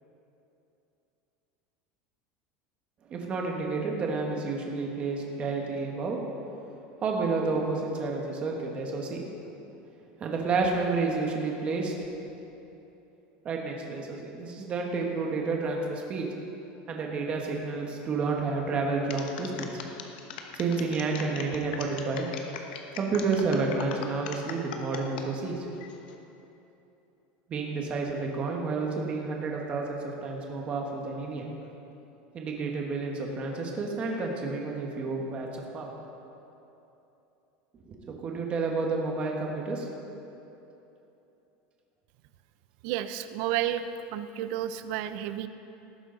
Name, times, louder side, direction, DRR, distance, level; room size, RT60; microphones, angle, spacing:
voice 1, 3.1-6.2 7.0-9.2 10.2-12.1 13.4-16.3 16.9-19.8 20.5-22.3 23.0-25.7 27.5-31.5 32.3-35.5 35.7-35.9 37.9-39.9, right 4 dB, 25° right, 0 dB, 1.5 m, -30 dB
sound 1, 19.1-25.3 25.7-26.2, left 7 dB, 90° left, 1.2 m, -40 dB
voice 2, 42.8-43.8 44.1-45.5, right 12 dB, 55° right, 11 dB, 0.6 m, -31 dB
18.5 x 9.5 x 4.0 m, 3.0 s
supercardioid pair, 170°, 5 cm